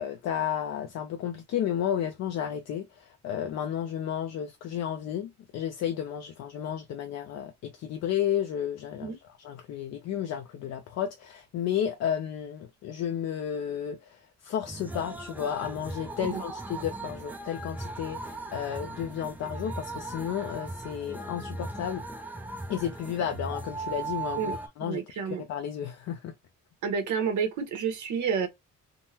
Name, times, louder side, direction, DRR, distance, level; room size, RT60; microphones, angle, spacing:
voice 1, 0.0-22.0 22.7-26.3, left 9 dB, 60° left, 0.4 m, -32 dB
sound 1, 14.7-24.7, right 2 dB, 5° right, 0.3 m, -38 dB
voice 2, 24.4-25.4 26.8-28.5, right 6 dB, 70° right, 1.0 m, -30 dB
3.6 x 2.0 x 2.7 m
cardioid pair, 145°, 31 cm